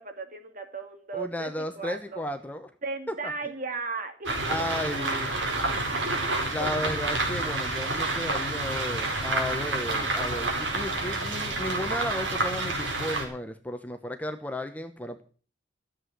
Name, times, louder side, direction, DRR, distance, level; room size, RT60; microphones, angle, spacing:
voice 1, 0.0-2.2 2.8-6.7, right 3 dB, 45° right, 6 dB, 2.4 m, -37 dB
voice 2, 1.1-2.7 4.5-5.3 6.5-15.2, left 1 dB, 10° left, 6 dB, 1.1 m, -34 dB
sound 1, 4.2-13.2, right 2 dB, 85° right, 4.7 m, -29 dB
14.0 x 8.0 x 8.1 m, 0.40 s
head